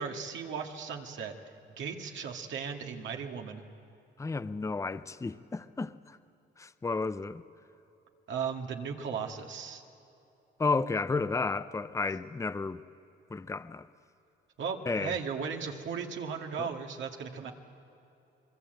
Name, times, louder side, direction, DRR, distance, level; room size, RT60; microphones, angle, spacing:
voice 1, 0.0-1.3 1.8-3.6 8.3-9.8 14.6-17.5, right 6 dB, 70° right, 2.1 m, -36 dB
voice 2, 4.2-6.2 6.6-7.4 10.6-12.8 13.3-13.9 14.9-15.2 16.6-16.7, left 4 dB, 15° left, 0.6 m, -32 dB
25.0 x 22.5 x 8.0 m
cardioid pair, 90°, 20 cm